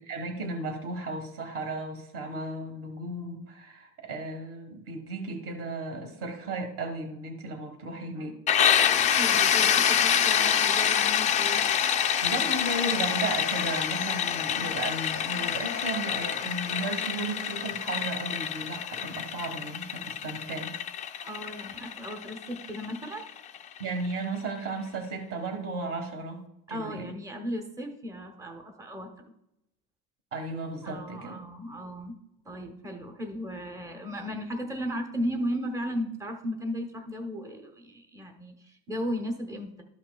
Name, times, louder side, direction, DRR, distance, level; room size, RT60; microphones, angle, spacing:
voice 1, 0.0-8.4 12.2-20.7 23.8-26.4 26.7-27.1 30.3-31.4, right 2 dB, 40° right, 4 dB, 1.4 m, -35 dB
sound 1, 8.5-24.1, left 9 dB, 20° left, 0.3 m, -26 dB
voice 2, 9.1-11.7 21.2-23.3 26.7-29.1 30.8-32.2 32.4-39.8, equal, 10° right, 4 dB, 0.9 m, -35 dB
13.0 x 5.6 x 2.3 m, 0.82 s
cardioid pair, 155°, 35 cm